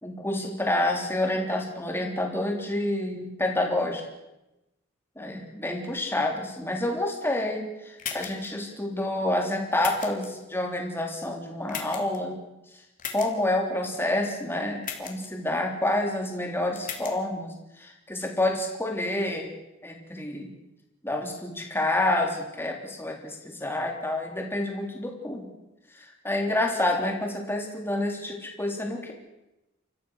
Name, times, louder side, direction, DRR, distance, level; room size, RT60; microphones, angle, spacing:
voice 1, 0.0-4.0 5.2-12.4 13.1-19.5 19.8-20.5 21.0-25.5 26.0-29.1, left 1 dB, 10° left, 2 dB, 3.5 m, -28 dB
sound 1, 8.0-8.5 9.8-10.3 11.7-12.2 13.0-13.3 14.8-15.3 16.8-17.1, left 7 dB, 40° left, 2.9 m, -35 dB
29.5 x 14.5 x 6.5 m, 0.94 s
head